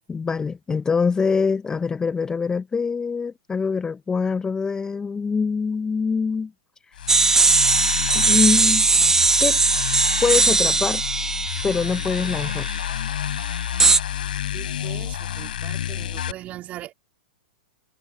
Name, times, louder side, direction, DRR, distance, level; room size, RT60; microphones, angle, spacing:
voice 1, 0.1-6.5 8.1-8.9 9.4-9.6 10.2-11.0 11.6-12.7, left 5 dB, 15° left, 0.7 m, -24 dB
sound 1, 6.9-16.3, left 10 dB, 70° left, 4.4 m, -29 dB
sound 2, 7.1-12.8 13.8-14.0, right 3 dB, 10° right, 1.3 m, -19 dB
voice 2, 14.5-16.9, right 14 dB, 30° right, 3.6 m, -39 dB
hypercardioid pair, 110°, 5 cm